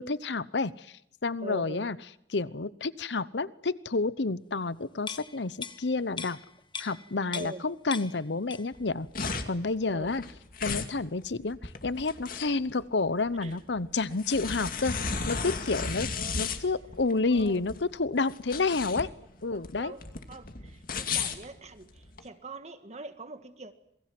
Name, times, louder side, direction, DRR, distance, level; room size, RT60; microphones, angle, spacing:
voice 1, 0.0-2.0 2.3-6.4 6.8-9.1 9.5-10.2 10.6-14.9 15.3-16.1 16.4-19.1 19.4-19.9, left 3 dB, 85° left, 0.9 m, -30 dB
voice 2, 1.4-1.9 7.3-7.6 9.9-10.1 13.4-13.6 15.7-15.8 16.2-16.4 17.3-17.6 19.5-23.7, right 2 dB, 40° right, 1.7 m, -43 dB
sound 1, 5.0-7.7 7.9-8.9 9.2-9.3, left 6 dB, 30° left, 1.3 m, -40 dB
sound 2, 8.7-22.2, left 5 dB, 55° left, 2.4 m, -35 dB
27.5 x 21.5 x 7.8 m
head